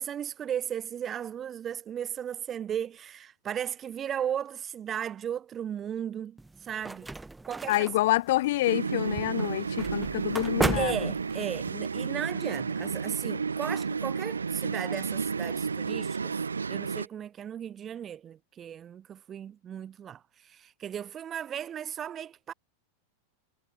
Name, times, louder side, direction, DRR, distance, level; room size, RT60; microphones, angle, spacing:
voice 1, 0.0-7.1 7.4-7.9 10.7-16.4 16.7-22.5, right 9 dB, 25° right, 4.2 m, -36 dB
sound 1, 6.4-11.7, right 2 dB, 5° right, 6.4 m, -35 dB
voice 2, 7.7-11.1, left 17 dB, 55° left, 1.7 m, -27 dB
sound 2, 8.7-17.1, right 5 dB, 75° right, 3.3 m, -32 dB
figure-of-eight pair, 90°, 0 cm